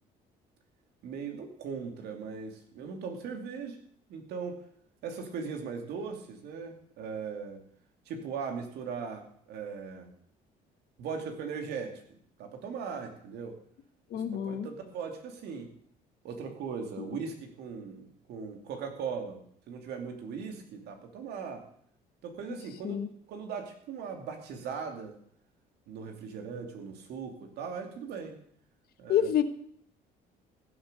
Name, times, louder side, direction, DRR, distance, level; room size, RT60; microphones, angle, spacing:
voice 1, 1.0-3.8 4.1-4.6 5.0-7.6 8.1-10.1 11.0-12.0 12.4-13.6 14.1-15.7 16.2-21.7 22.2-23.0 23.3-25.2 25.9-28.4 29.0-29.3, right 6 dB, 75° right, 4 dB, 2.7 m, -39 dB
voice 2, 14.1-14.7 17.0-17.1 22.8-23.1 29.1-29.4, left 9 dB, 65° left, 11 dB, 1.2 m, -28 dB
15.5 x 7.9 x 6.8 m, 0.64 s
cardioid pair, 110°, 17 cm